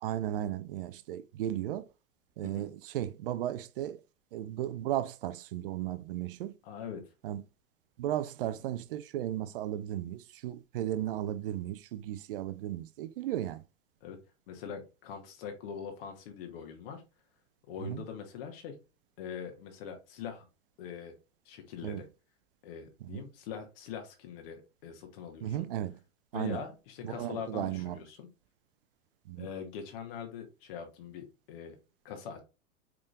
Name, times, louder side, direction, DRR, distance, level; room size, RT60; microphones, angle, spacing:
voice 1, 0.0-1.8 2.4-4.0 4.3-6.5 7.2-7.4 8.0-13.6 17.8-18.0 21.8-22.0 23.1-23.2 25.4-26.0 26.3-26.6 27.0-28.0 29.3-29.5, right 12 dB, 45° right, 0.5 m, -35 dB
voice 2, 6.6-7.0 14.0-14.2 14.5-17.0 17.7-18.8 19.2-20.5 20.8-21.1 21.4-22.1 22.6-25.7 26.3-28.3 29.4-31.8 32.0-32.4, left 7 dB, 50° left, 1.2 m, -42 dB
4.9 x 3.7 x 2.4 m
figure-of-eight pair, 90°, 38 cm